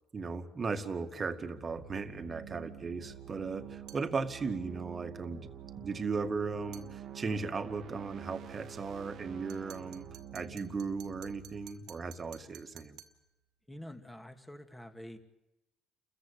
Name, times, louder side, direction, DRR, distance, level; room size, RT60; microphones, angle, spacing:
voice 1, 0.1-5.5 5.8-13.0, right 4 dB, 30° right, 8 dB, 2.1 m, -37 dB
sound 1, 1.3-13.1, right 9 dB, 55° right, 1.6 m, -48 dB
sound 2, 3.9-4.1 6.7-6.9 9.5-13.2, right 12 dB, 75° right, 2.2 m, -54 dB
voice 2, 13.7-15.2, left 1 dB, 5° left, 7 dB, 2.5 m, -47 dB
30.0 x 14.5 x 8.6 m, 0.92 s
cardioid pair, 100°, 0 cm